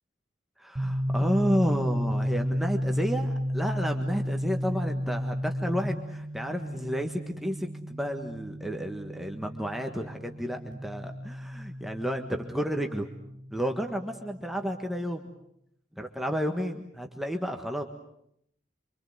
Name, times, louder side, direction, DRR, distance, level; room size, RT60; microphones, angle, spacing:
voice 1, 0.6-13.1 13.5-15.3 16.0-17.8, equal, ahead, 3 dB, 1.6 m, -31 dB
sound 1, 0.8-14.4, equal, 20° right, 3.9 m, -33 dB
26.5 x 25.5 x 8.1 m, 0.74 s
head